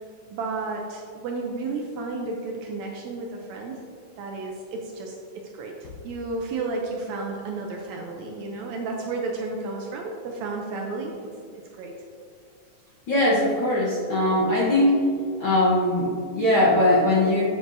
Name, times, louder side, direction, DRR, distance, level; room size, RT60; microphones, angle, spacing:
voice 1, 0.3-3.8 4.2-5.2 5.5-5.8 6.0-11.3 11.7-12.0, right 3 dB, 75° right, 0 dB, 1.7 m, -32 dB
voice 2, 13.1-14.9 15.4-17.4, left 1 dB, 60° left, -8 dB, 1.4 m, -20 dB
7.7 x 7.4 x 2.6 m, 2.3 s
omnidirectional pair, 3.6 m